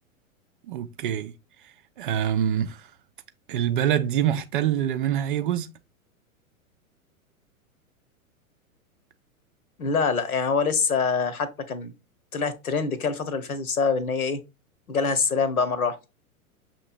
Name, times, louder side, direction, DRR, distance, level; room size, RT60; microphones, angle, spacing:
voice 1, 0.7-1.3 2.0-2.9 3.5-5.7, right 10 dB, 40° right, 0.4 m, -25 dB
voice 2, 9.8-11.9 12.3-14.4 14.9-16.0, left 5 dB, 75° left, 1.1 m, -25 dB
6.4 x 3.1 x 2.5 m
figure-of-eight pair, 100°, 43 cm